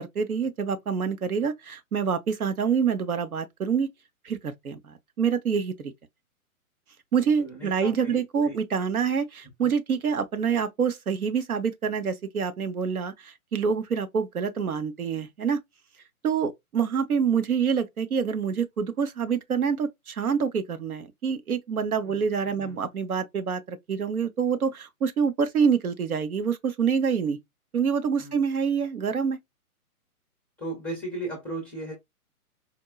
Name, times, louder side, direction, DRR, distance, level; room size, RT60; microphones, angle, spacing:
voice 1, 0.0-3.9 4.2-5.9 7.1-15.6 16.2-27.4 27.7-29.4, right 6 dB, 70° right, 1.0 m, -26 dB
voice 2, 7.2-8.5 9.6-9.7 22.0-22.8 28.2-28.4 30.6-31.9, right 2 dB, 5° left, 0.6 m, -37 dB
4.4 x 2.2 x 2.3 m
figure-of-eight pair, 130°, 45 cm